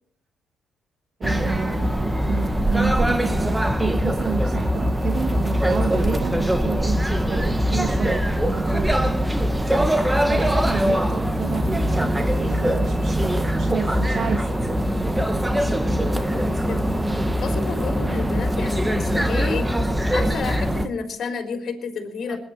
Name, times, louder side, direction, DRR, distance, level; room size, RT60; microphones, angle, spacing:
sound 1, 1.2-20.9, equal, 10° right, 1.3 m, -22 dB
voice 1, 1.2-9.0 10.3-12.1 12.4-14.5 22.3-22.4, right 6 dB, 55° right, 7 dB, 1.2 m, -30 dB
voice 2, 16.3-16.9 17.4-19.7 20.1-22.4, left 5 dB, 55° left, 4 dB, 3.6 m, -31 dB
20.5 x 10.0 x 6.5 m, 0.65 s
cardioid pair, 90°, 0 cm